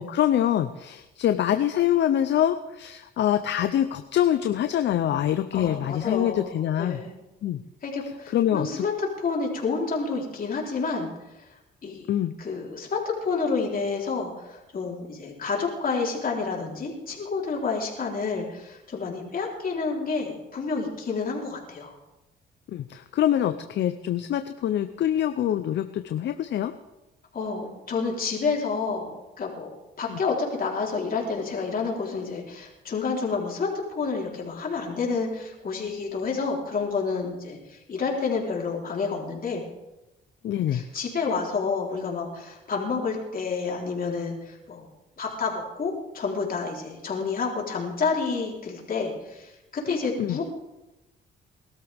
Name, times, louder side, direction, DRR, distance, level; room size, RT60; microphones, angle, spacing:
voice 1, 0.0-7.0 7.4-7.6 8.3-8.8 12.1-12.3 22.7-26.7 30.1-30.2 40.4-40.8 50.2-50.4, left 11 dB, 65° left, 9 dB, 0.7 m, -25 dB
voice 2, 5.5-7.1 7.8-11.1 11.8-12.1 12.4-22.0 27.3-29.7 30.0-39.6 40.7-44.9 45.2-50.4, left 4 dB, 45° left, -2 dB, 3.9 m, -29 dB
20.5 x 13.0 x 3.6 m, 0.98 s
cardioid pair, 90°, 20 cm